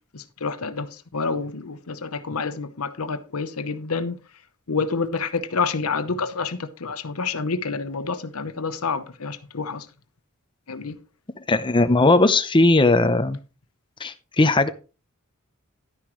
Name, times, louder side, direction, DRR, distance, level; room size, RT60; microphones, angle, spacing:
voice 1, 0.1-4.2 4.7-9.9 10.7-11.0, left 4 dB, 90° left, 0.9 m, -28 dB
voice 2, 11.5-13.4 14.0-14.7, left 2 dB, 25° left, 0.7 m, -18 dB
11.5 x 9.8 x 3.1 m
head